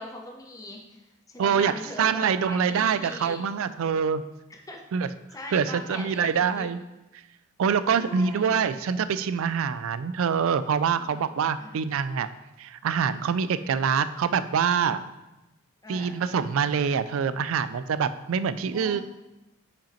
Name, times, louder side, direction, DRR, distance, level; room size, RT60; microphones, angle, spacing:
voice 1, 0.0-3.4 4.5-4.8 5.3-6.7 8.0-8.6 11.0-11.3 11.6-11.8 15.8-16.2 18.7-19.0, left 1 dB, 15° left, 1 dB, 0.7 m, -41 dB
voice 2, 1.4-1.7 2.0-4.2 4.9-5.1 5.5-6.8 7.6-12.3 12.6-15.0 15.9-19.0, right 6 dB, 80° right, 13 dB, 0.3 m, -25 dB
5.7 x 5.1 x 4.3 m, 1.0 s
head